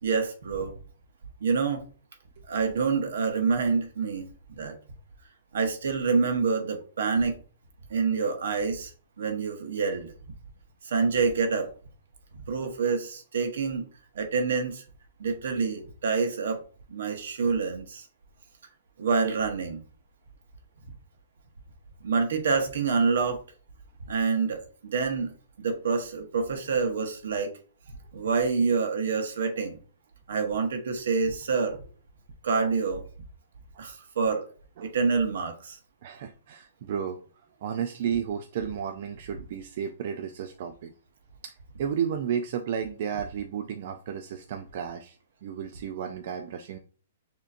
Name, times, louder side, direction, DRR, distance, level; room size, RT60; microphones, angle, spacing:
voice 1, 0.0-0.7 1.4-1.8 2.5-4.7 5.5-7.3 7.9-8.9 9.2-10.1 10.8-11.7 12.5-13.8 14.1-14.8 15.2-16.6 16.9-18.0 19.0-19.8 22.0-23.4 24.1-24.6 24.9-25.3 25.6-27.5 28.1-29.8 30.3-31.8 32.4-33.0 33.8-34.4 34.8-35.8, right 5 dB, 70° right, 6 dB, 1.2 m, -27 dB
voice 2, 36.0-37.2 37.6-40.9 41.4-41.5 41.8-45.2 45.4-46.8, right 8 dB, 45° right, 7 dB, 0.4 m, -32 dB
6.8 x 3.0 x 2.5 m, 0.40 s
hypercardioid pair, 170°, 0 cm